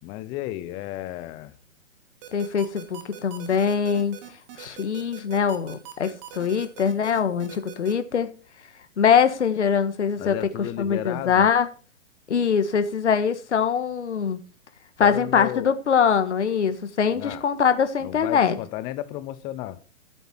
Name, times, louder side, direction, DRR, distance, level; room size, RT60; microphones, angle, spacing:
voice 1, 0.0-1.5 10.2-11.5 15.0-15.7 17.1-17.4 18.0-19.8, left 14 dB, 15° left, 0.5 m, -33 dB
sound 1, 2.2-7.9, right 11 dB, 35° right, 2.7 m, -42 dB
voice 2, 2.3-4.2 4.6-8.3 9.0-10.4 10.8-11.7 12.3-14.4 15.0-18.6, left 7 dB, 60° left, 1.7 m, -23 dB
14.5 x 8.0 x 4.4 m
figure-of-eight pair, 125°, 38 cm